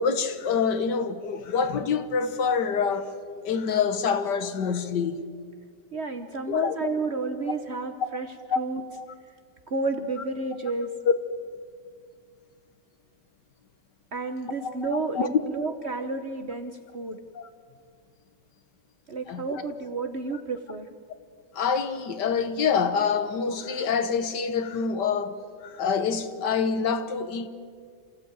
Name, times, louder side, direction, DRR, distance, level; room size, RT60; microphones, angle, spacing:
voice 1, 0.0-3.1 3.4-5.3 6.5-6.8 8.5-8.6 8.9-9.0 14.6-14.9 15.2-15.3 17.3-17.5 19.3-19.5 21.5-25.4 25.6-27.5, left 6 dB, 65° left, 1.7 m, -26 dB
voice 2, 5.9-8.8 9.7-10.9 14.1-17.2 19.1-20.9, right 3 dB, 45° right, 1.1 m, -31 dB
27.5 x 15.0 x 8.9 m
omnidirectional pair, 2.0 m